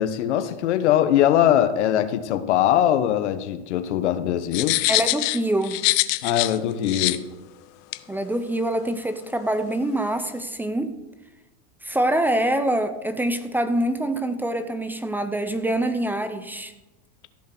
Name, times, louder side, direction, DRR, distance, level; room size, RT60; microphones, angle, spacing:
voice 1, 0.0-4.8 6.2-7.3, left 11 dB, 85° left, 1.2 m, -21 dB
sound 1, 4.5-6.6 6.9-7.2 7.9-8.0, left 20 dB, 50° left, 0.6 m, -23 dB
voice 2, 4.9-5.8 8.1-11.0 11.8-16.7, right 1 dB, 5° right, 0.6 m, -25 dB
14.0 x 7.4 x 6.1 m
supercardioid pair, 140°, 34 cm